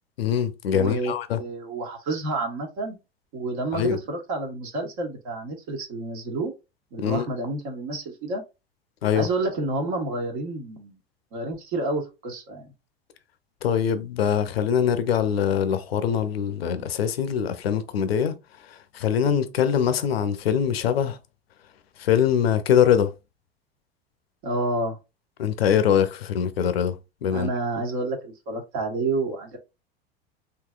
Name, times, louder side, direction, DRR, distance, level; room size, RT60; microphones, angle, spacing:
voice 1, 0.2-1.4 3.7-4.0 7.0-7.3 9.0-9.3 13.6-21.2 22.0-23.1 25.4-27.5, left 8 dB, 85° left, 0.5 m, -23 dB
voice 2, 0.7-3.0 3.3-6.5 6.9-8.4 9.1-11.0 11.3-12.7 24.4-25.0 27.3-29.6, right 2 dB, 60° right, 1.3 m, -29 dB
3.7 x 2.7 x 2.3 m
hypercardioid pair, 80°, 30 cm